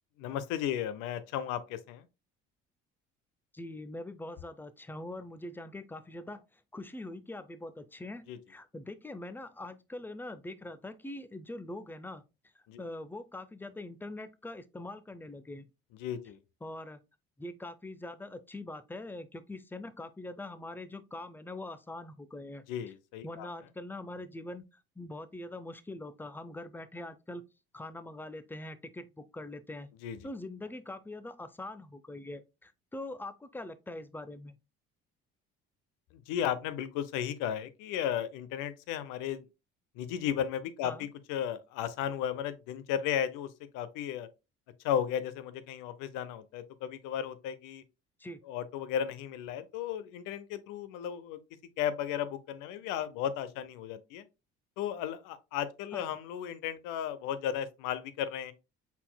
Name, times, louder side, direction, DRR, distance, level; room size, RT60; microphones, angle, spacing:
voice 1, 0.2-2.0 8.3-8.4 12.7-12.8 16.0-16.4 22.7-23.5 30.0-30.2 36.1-39.4 40.0-44.3 44.8-47.8 48.4-51.4 51.8-54.2 54.8-58.5, left 9 dB, 70° left, 0.7 m, -35 dB
voice 2, 3.5-6.4 6.7-12.2 12.8-15.7 16.6-17.0 17.4-22.6 23.2-24.6 25.0-27.4 27.7-29.9 30.2-34.5 40.8-41.1 48.2-48.4 55.9-56.1, left 2 dB, 5° left, 0.6 m, -43 dB
5.5 x 4.1 x 2.2 m
hypercardioid pair, 60°, 32 cm